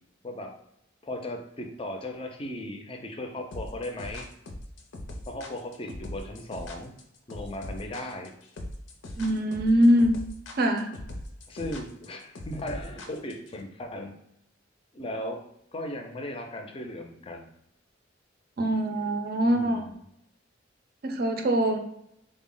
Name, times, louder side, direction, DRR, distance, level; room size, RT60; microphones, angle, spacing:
voice 1, 1.0-4.3 5.3-6.9 7.3-8.3 11.5-14.1 14.9-15.4 15.7-17.5 19.5-19.9, left 1 dB, 30° left, 3 dB, 0.5 m, -37 dB
sound 1, 3.5-13.5, left 1 dB, 85° left, 0.6 m, -40 dB
voice 2, 9.2-10.1 10.6-10.9 18.6-19.9 21.0-21.8, equal, 55° right, 6 dB, 0.5 m, -23 dB
3.7 x 2.0 x 3.8 m, 0.78 s
head